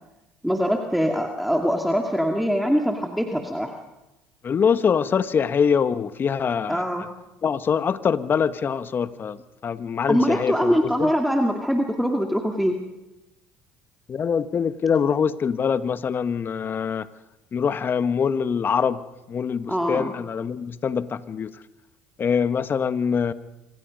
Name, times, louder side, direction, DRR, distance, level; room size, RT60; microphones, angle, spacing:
voice 1, 0.4-3.7 6.7-7.0 10.1-12.8 19.7-20.1, equal, ahead, 2 dB, 2.3 m, -23 dB
voice 2, 4.4-6.8 7.4-9.4 9.6-11.1 14.1-17.1 17.5-19.0 19.3-21.5 22.2-23.3, left 6 dB, 40° left, 13 dB, 1.3 m, -24 dB
26.0 x 26.0 x 5.3 m, 0.99 s
hypercardioid pair, 70°, 6 cm